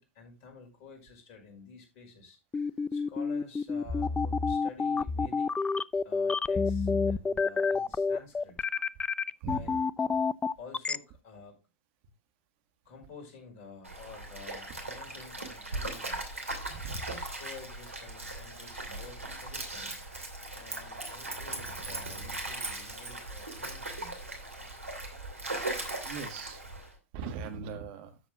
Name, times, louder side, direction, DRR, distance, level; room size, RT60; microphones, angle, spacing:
voice 1, 0.0-2.4 2.9-5.5 6.0-8.6 9.4-9.9 10.6-11.6 12.9-16.4 17.1-20.0 20.5-24.3, left 5 dB, 50° left, 2 dB, 5.3 m, -50 dB
sound 1, 2.5-11.0, left 4 dB, 15° left, 0.4 m, -28 dB
Stream, 13.8-26.9, right 2 dB, 90° right, 2.5 m, -39 dB
voice 2, 16.7-17.0 26.0-26.6 27.1-28.2, right 4 dB, 55° right, 7 dB, 1.7 m, -39 dB
13.0 x 7.3 x 2.4 m, 0.27 s
figure-of-eight pair, 90°, 7 cm